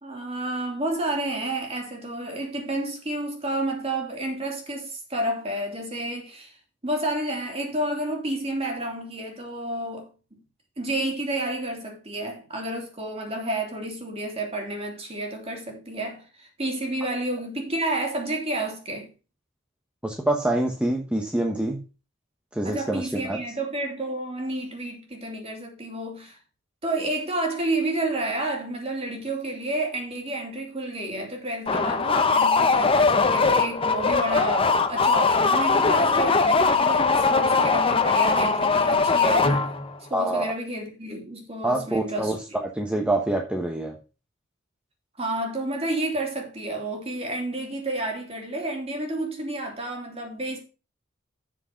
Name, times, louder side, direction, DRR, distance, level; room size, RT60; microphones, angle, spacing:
voice 1, 0.0-6.6 6.8-10.4 10.8-19.1 22.6-26.4 26.8-39.7 40.0-42.3 45.2-50.6, right 1 dB, 30° right, 2.8 m, -30 dB
voice 2, 20.0-21.8 22.5-23.4 40.1-40.5 41.6-44.0, right 1 dB, 5° right, 1.1 m, -26 dB
sound 1, 31.7-40.0, left 4 dB, 25° left, 0.9 m, -21 dB
7.6 x 6.4 x 5.7 m
head